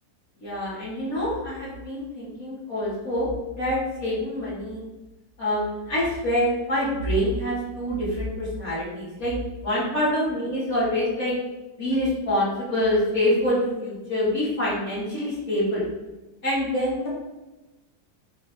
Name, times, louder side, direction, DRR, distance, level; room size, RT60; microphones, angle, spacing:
voice 1, 0.4-3.3 3.5-4.8 5.4-9.3 9.6-11.3 11.8-15.8 16.4-17.1, left 1 dB, 55° left, -10 dB, 3.7 m, -26 dB
11.5 x 4.5 x 4.0 m, 1.1 s
omnidirectional pair, 1.8 m